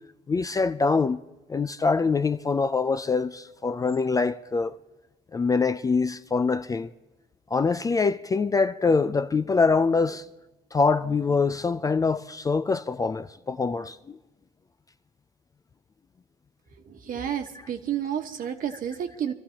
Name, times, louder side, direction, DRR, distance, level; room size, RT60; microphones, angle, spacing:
voice 1, 0.3-1.2 1.5-4.8 5.3-6.9 7.5-10.2 10.7-14.2, left 4 dB, 20° left, 0.4 m, -24 dB
voice 2, 16.8-19.3, right 9 dB, 55° right, 1.4 m, -31 dB
26.0 x 14.0 x 2.9 m
cardioid pair, 110°, 17 cm